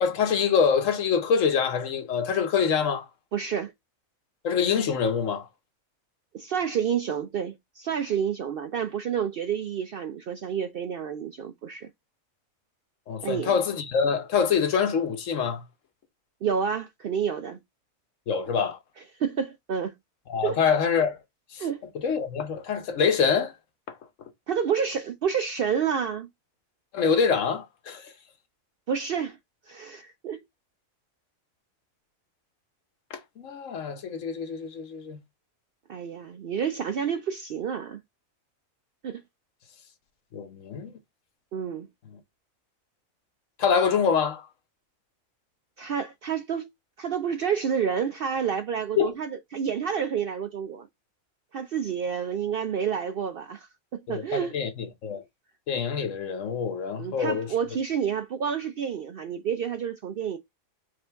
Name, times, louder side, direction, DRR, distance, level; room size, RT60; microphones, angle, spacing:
voice 1, 0.0-3.1 4.4-5.5 13.1-15.6 18.3-18.8 20.3-21.2 21.5-21.6 22.0-23.5 26.9-28.1 33.1-35.2 40.3-40.9 43.6-44.4 49.0-49.1 54.1-55.2 55.7-57.5, left 6 dB, 70° left, 1.2 m, -25 dB
voice 2, 3.3-3.7 6.3-11.9 13.2-13.5 16.4-17.6 19.2-19.9 20.4-20.6 21.6-21.8 24.5-26.3 28.9-29.4 29.7-30.4 35.9-38.0 39.0-39.2 41.5-41.9 45.8-46.7 47.0-50.9 51.5-53.7 53.9-54.6 57.0-60.4, right 7 dB, 65° right, 0.5 m, -29 dB
4.9 x 2.7 x 3.3 m
omnidirectional pair, 1.4 m